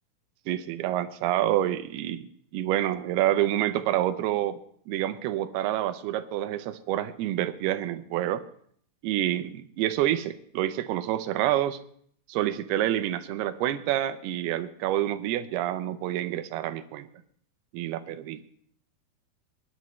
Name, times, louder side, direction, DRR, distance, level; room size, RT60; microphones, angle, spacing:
voice 1, 0.5-2.3 2.5-4.6 4.9-8.4 9.0-11.8 12.3-17.1 17.7-18.4, right 13 dB, 85° right, 12 dB, 2.7 m, -28 dB
24.0 x 11.0 x 3.1 m, 0.62 s
omnidirectional pair, 4.5 m